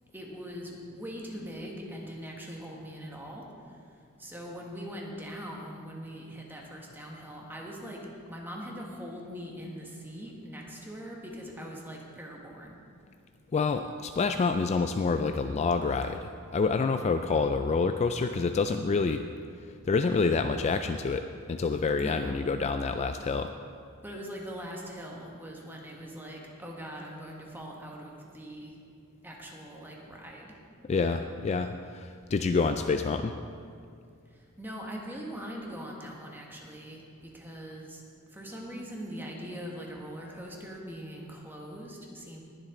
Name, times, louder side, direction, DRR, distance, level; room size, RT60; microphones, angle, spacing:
voice 1, 0.1-3.4 4.2-12.8 22.0-22.3 24.0-28.7 29.2-30.6 34.6-38.0 38.3-42.4, equal, 10° right, -1 dB, 1.5 m, -41 dB
voice 2, 13.5-19.2 19.9-23.5 30.9-33.3, left 4 dB, 30° left, 8 dB, 0.3 m, -27 dB
20.0 x 7.5 x 3.8 m, 2.3 s
head